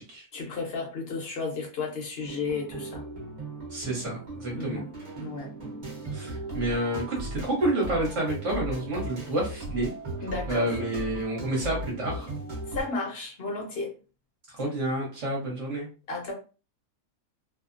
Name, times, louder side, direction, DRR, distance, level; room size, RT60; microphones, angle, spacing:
voice 1, 0.3-3.0 4.5-4.9 5.2-5.5 10.2-10.8 12.7-13.9 16.1-16.3, left 3 dB, 50° left, 0.8 m, -33 dB
sound 1, 2.2-12.8, right 1 dB, 35° right, 0.8 m, -37 dB
voice 2, 3.7-4.8 6.1-9.9 10.5-12.3 14.5-15.9, right 1 dB, 55° right, 1.1 m, -29 dB
2.8 x 2.0 x 2.5 m
omnidirectional pair, 1.8 m